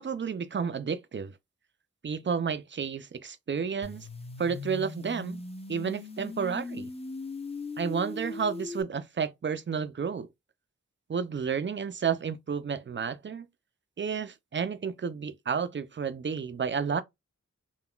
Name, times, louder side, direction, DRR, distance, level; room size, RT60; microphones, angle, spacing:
voice 1, 0.0-1.3 2.0-4.1 4.4-5.4 5.7-6.9 7.8-10.3 11.1-13.5 14.0-17.0, right 6 dB, 40° right, 0.4 m, -31 dB
sound 1, 3.8-8.8, left 3 dB, 20° left, 0.5 m, -39 dB
3.6 x 2.2 x 2.3 m
wide cardioid pair, 70°, 30 cm